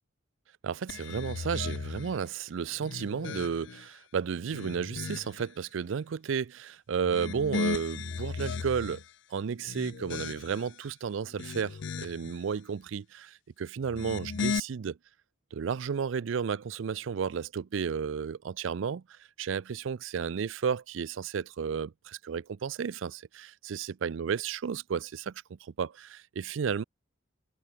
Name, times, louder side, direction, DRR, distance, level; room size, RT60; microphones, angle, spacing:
voice 1, 0.6-9.0 9.3-15.0 15.5-19.0 19.4-25.3 25.8-26.8, right 6 dB, 85° right, 0.4 m, -33 dB
sound 1, 0.9-2.2 2.7-3.9 4.4-5.5 7.0-9.1 9.6-10.7 11.2-12.3 13.8-14.6, left 5 dB, 70° left, 0.5 m, -36 dB
open air
head